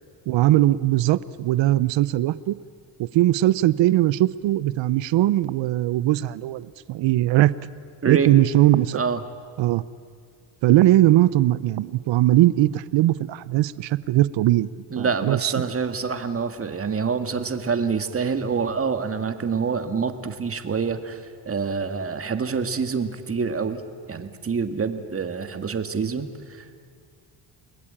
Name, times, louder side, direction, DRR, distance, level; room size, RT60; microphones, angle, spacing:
voice 1, 0.3-2.6 3.0-7.5 8.0-9.0 9.6-9.8 10.6-15.5, right 15 dB, 80° right, 17 dB, 0.8 m, -20 dB
voice 2, 8.0-8.3 8.9-9.2 14.9-23.8 24.1-26.8, right 5 dB, 30° right, 8 dB, 1.9 m, -26 dB
29.5 x 20.5 x 8.8 m, 2.2 s
cardioid pair, 120°, 44 cm